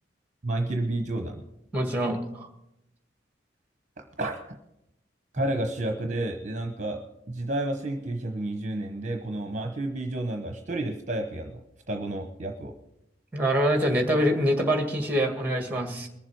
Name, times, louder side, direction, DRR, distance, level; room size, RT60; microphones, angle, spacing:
voice 1, 0.4-1.4 4.0-4.6 5.3-7.0 7.3-11.6 11.9-12.7, right 1 dB, 40° right, 5 dB, 1.0 m, -31 dB
voice 2, 1.7-2.5 13.3-16.1, equal, 10° right, 4 dB, 1.7 m, -25 dB
21.5 x 7.4 x 4.6 m, 0.84 s
head